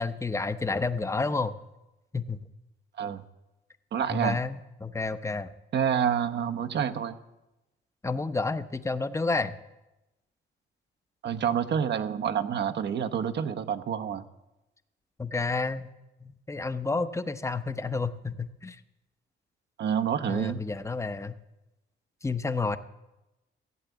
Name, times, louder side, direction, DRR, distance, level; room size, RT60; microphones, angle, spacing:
voice 1, 0.0-1.5 2.1-2.4 4.1-5.5 8.0-9.5 15.2-15.9 16.2-18.8 20.3-21.3 22.2-22.8, left 3 dB, 15° left, 11 dB, 0.8 m, -30 dB
voice 2, 3.9-4.4 5.7-7.2 11.2-14.2 19.8-20.6, right 8 dB, 60° right, 8 dB, 1.0 m, -28 dB
15.0 x 8.2 x 8.1 m, 0.98 s
cardioid pair, 90°, 20 cm